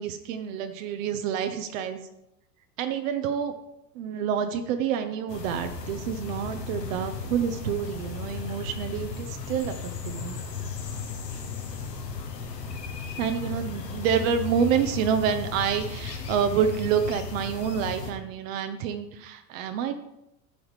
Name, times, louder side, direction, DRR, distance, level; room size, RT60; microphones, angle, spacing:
voice 1, 0.0-2.0 2.8-3.5 3.9-10.4 13.2-20.0, right 8 dB, 50° right, 7 dB, 0.8 m, -28 dB
sound 1, 5.3-18.1, left 5 dB, 75° left, 1.6 m, -35 dB
12.5 x 7.1 x 3.4 m, 0.86 s
figure-of-eight pair, 85°, 49 cm